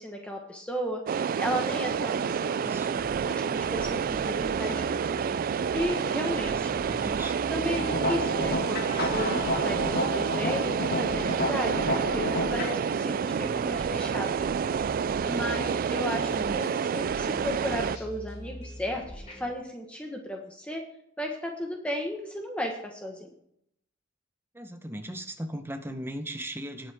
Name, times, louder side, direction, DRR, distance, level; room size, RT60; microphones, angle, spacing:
voice 1, 0.0-2.8 3.2-5.3 5.7-6.7 7.5-14.6 15.2-20.8 21.2-23.3, left 1 dB, 5° left, 1 dB, 1.3 m, -34 dB
sound 1, 1.1-18.0, right 7 dB, 45° right, 0.3 m, -29 dB
sound 2, 2.6-19.5, equal, 35° left, 4.6 m, -44 dB
voice 2, 2.6-3.1 6.5-7.4 16.3-16.6 24.5-26.9, right 1 dB, 10° right, 7 dB, 0.9 m, -38 dB
sound 3, 7.7-12.7, left 1 dB, 55° left, 1.9 m, -31 dB
19.0 x 7.6 x 3.6 m, 0.73 s
head